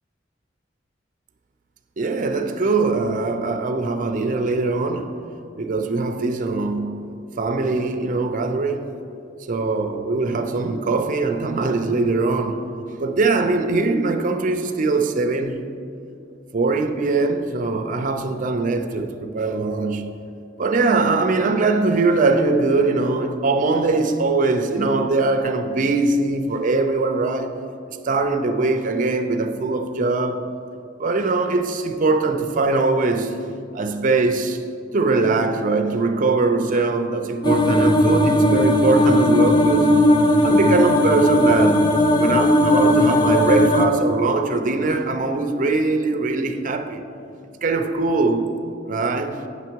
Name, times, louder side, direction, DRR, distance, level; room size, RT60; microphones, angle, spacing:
voice 1, 2.0-5.1 5.6-8.9 9.5-12.6 13.0-15.6 16.5-20.2 20.6-27.6 28.0-30.4 31.0-33.4 33.7-34.6 34.9-39.9 40.4-47.0 47.6-48.5 48.9-49.4, right 3 dB, 45° right, 0.6 m, -21 dB
sound 1, 37.4-43.9, left 1 dB, 25° left, 0.5 m, -17 dB
8.4 x 6.9 x 4.5 m
head